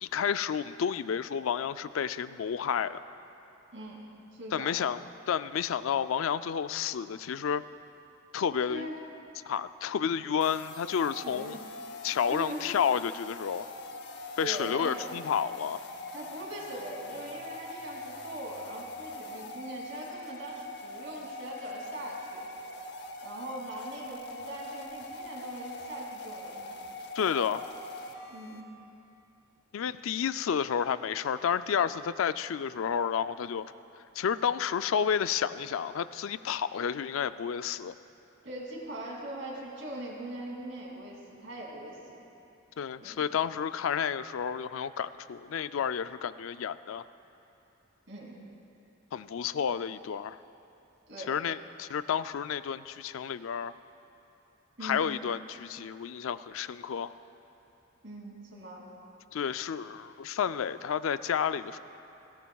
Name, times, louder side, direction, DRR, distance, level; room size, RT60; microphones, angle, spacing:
voice 1, 0.0-3.0 4.5-5.0 5.3-7.6 8.3-8.9 9.5-11.6 12.0-13.7 14.4-15.8 27.1-27.7 29.7-33.7 34.2-38.0 42.8-47.0 49.1-50.4 51.3-53.7 54.8-57.1 59.3-61.8, left 7 dB, 85° left, 13 dB, 0.4 m, -31 dB
voice 2, 4.3-4.7 8.7-9.0 11.2-11.6 12.3-12.8 14.4-15.1 16.1-22.4 23.2-26.8 28.3-28.7 38.4-42.2 43.0-43.2 48.1-48.3 51.1-51.3 54.8-55.0 58.0-58.8, right 1 dB, 65° right, -2 dB, 2.8 m, -41 dB
sound 1, 10.4-28.6, left 2 dB, 55° left, 0.7 m, -42 dB
20.0 x 17.0 x 2.3 m, 2.8 s
head